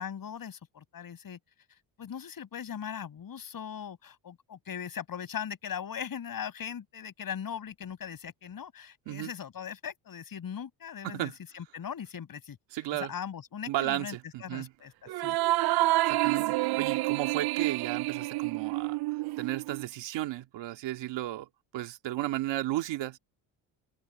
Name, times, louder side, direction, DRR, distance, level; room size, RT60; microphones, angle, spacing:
voice 1, 0.0-1.4 2.0-12.6 13.0-14.1 14.4-14.9 15.2-15.4, left 8 dB, 50° left, 6.8 m, -39 dB
voice 2, 11.0-11.4 12.7-13.1 13.7-14.7 16.1-19.0 19.4-21.5 21.7-23.2, right 15 dB, 75° right, 2.2 m, -34 dB
sound 1, 15.1-19.8, right 18 dB, 60° right, 0.5 m, -28 dB
open air
cardioid pair, 85°, 44 cm